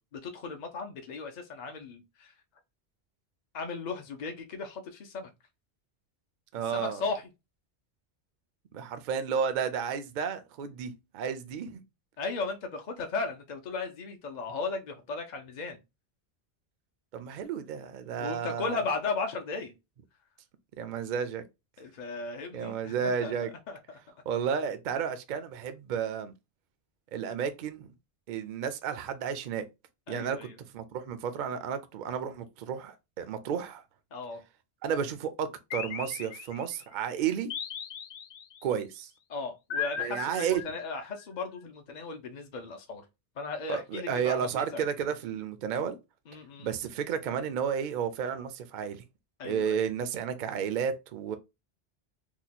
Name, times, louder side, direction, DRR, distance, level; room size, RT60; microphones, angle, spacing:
voice 1, 0.1-2.3 3.5-5.3 6.5-7.3 12.2-15.8 18.2-19.7 21.8-23.3 23.7-24.0 30.1-30.6 34.1-34.4 39.3-43.0 43.4-44.9 46.3-46.7 49.4-49.9, left 4 dB, 50° left, 0.6 m, -36 dB
voice 2, 6.5-7.0 8.7-11.8 17.1-18.8 20.8-21.4 22.5-23.5 24.3-26.3 27.1-27.9 28.3-29.6 30.1-30.4 30.7-33.8 34.8-37.5 38.6-39.1 40.0-40.6 43.7-46.0 46.6-49.0 49.4-51.4, right 7 dB, 55° right, 0.6 m, -32 dB
sound 1, 35.7-36.8 37.5-38.6 39.7-41.2, left 7 dB, 80° left, 0.9 m, -37 dB
2.8 x 2.2 x 4.0 m
omnidirectional pair, 1.1 m